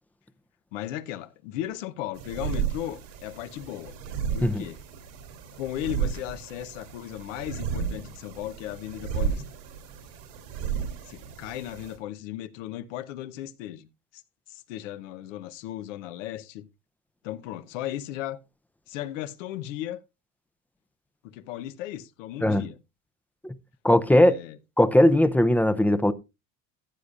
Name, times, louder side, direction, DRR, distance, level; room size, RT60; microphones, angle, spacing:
voice 1, 0.7-4.0 4.3-4.8 5.5-9.4 11.1-14.2 14.5-16.7 17.2-18.4 18.9-20.0 21.2-22.8 24.1-24.6, left 13 dB, 90° left, 0.9 m, -36 dB
sound 1, 2.1-12.0, right 7 dB, 90° right, 3.1 m, -33 dB
voice 2, 23.8-24.4 24.8-26.1, left 1 dB, 5° left, 0.5 m, -19 dB
14.5 x 8.4 x 2.5 m
supercardioid pair, 115°, 37 cm